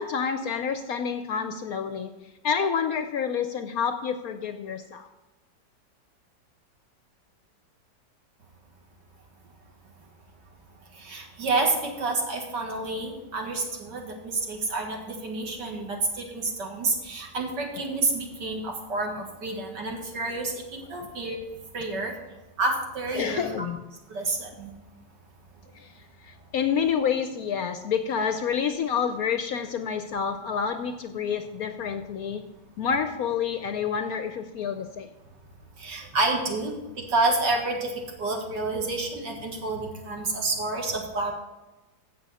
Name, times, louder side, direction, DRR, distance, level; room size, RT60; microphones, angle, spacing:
voice 1, 0.0-2.1 2.4-5.1 23.2-23.8 26.3-32.4 32.8-35.1, left 7 dB, 70° left, 8 dB, 0.9 m, -28 dB
voice 2, 11.0-20.6 20.9-21.4 21.7-22.1 22.6-23.5 24.1-24.7 35.8-36.7 37.1-37.9 38.2-41.3, right 3 dB, 70° right, 1 dB, 2.3 m, -29 dB
15.5 x 6.3 x 4.2 m, 1.1 s
omnidirectional pair, 1.9 m